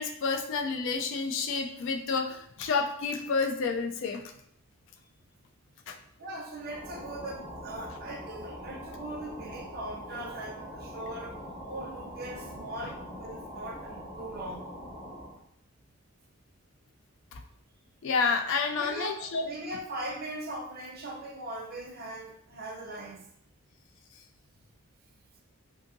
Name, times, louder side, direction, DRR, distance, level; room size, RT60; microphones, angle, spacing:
voice 1, 0.0-4.2 5.9-6.0 18.0-19.5, left 4 dB, 60° left, 5 dB, 0.3 m, -29 dB
voice 2, 6.2-14.6 18.8-23.3, right 1 dB, 45° right, 2 dB, 0.5 m, -40 dB
sound 1, 6.6-15.4, equal, 5° left, 0.6 m, -43 dB
2.7 x 2.6 x 2.6 m, 0.69 s
head